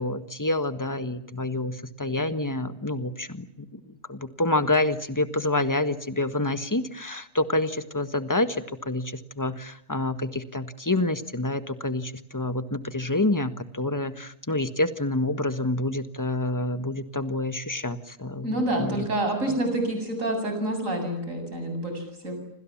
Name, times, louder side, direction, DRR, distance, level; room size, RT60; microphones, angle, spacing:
voice 1, 0.0-19.1 19.5-19.6, left 2 dB, 15° left, 11 dB, 1.6 m, -28 dB
voice 2, 18.4-22.4, right 1 dB, 85° right, 6 dB, 8.3 m, -28 dB
28.5 x 26.0 x 7.4 m, 0.75 s
omnidirectional pair, 1.3 m